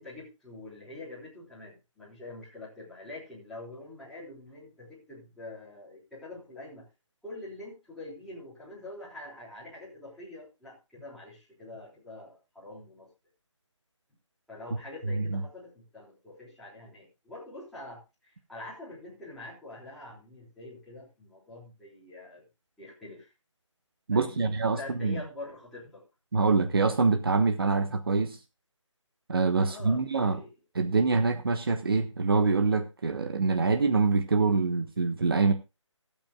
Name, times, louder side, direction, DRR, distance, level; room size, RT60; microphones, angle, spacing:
voice 1, 0.0-6.8 7.2-13.1 14.5-22.4 22.8-23.3 24.1-26.0 29.7-30.5, left 2 dB, ahead, -10 dB, 3.8 m, -45 dB
voice 2, 15.1-15.4 24.1-25.2 26.3-28.4 29.3-30.4 30.7-35.5, right 4 dB, 50° right, 7 dB, 1.3 m, -25 dB
26.0 x 8.9 x 2.3 m, 0.27 s
hypercardioid pair, 175°, 16 cm